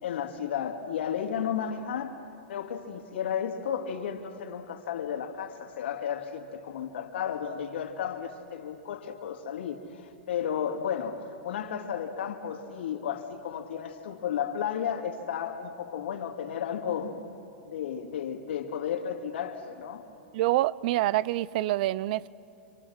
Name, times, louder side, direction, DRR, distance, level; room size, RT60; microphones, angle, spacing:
voice 1, 0.0-2.2 2.5-17.2 17.7-20.1, left 8 dB, 75° left, 2.5 m, -33 dB
voice 2, 20.3-22.3, right 16 dB, 50° right, 0.5 m, -26 dB
27.0 x 27.0 x 6.4 m
supercardioid pair, 150°, 6 cm